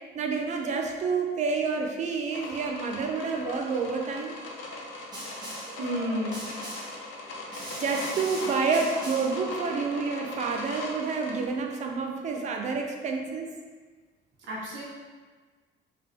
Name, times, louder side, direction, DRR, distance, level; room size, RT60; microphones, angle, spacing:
voice 1, 0.1-4.4 5.7-6.2 7.5-13.5, right 4 dB, 35° right, 2 dB, 0.4 m, -29 dB
sound 1, 2.3-11.5, left 2 dB, 85° left, 0.9 m, -39 dB
Snare drum, 5.1-5.8 6.3-7.0 7.5-9.4, right 1 dB, 20° right, 1.0 m, -40 dB
voice 2, 5.8-6.4 14.5-14.8, equal, 70° right, -5 dB, 0.9 m, -31 dB
3.8 x 3.6 x 3.4 m, 1.4 s
cardioid pair, 175°, 20 cm